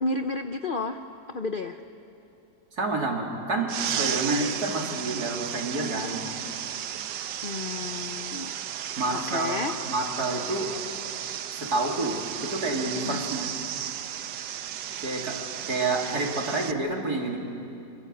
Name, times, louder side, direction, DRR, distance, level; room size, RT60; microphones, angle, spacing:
voice 1, 0.0-1.0 1.3-1.8 7.4-8.6 9.1-9.8 13.0-13.2, left 3 dB, 50° left, 7 dB, 0.6 m, -31 dB
voice 2, 2.8-6.2 9.0-9.6 9.9-10.7 11.5-13.5 15.0-15.4 15.7-17.4, right 2 dB, 60° right, 0 dB, 3.6 m, -29 dB
sound 1, 3.7-16.7, right 10 dB, 80° right, 1.5 m, -34 dB
25.5 x 25.0 x 7.9 m, 2.7 s
omnidirectional pair, 1.9 m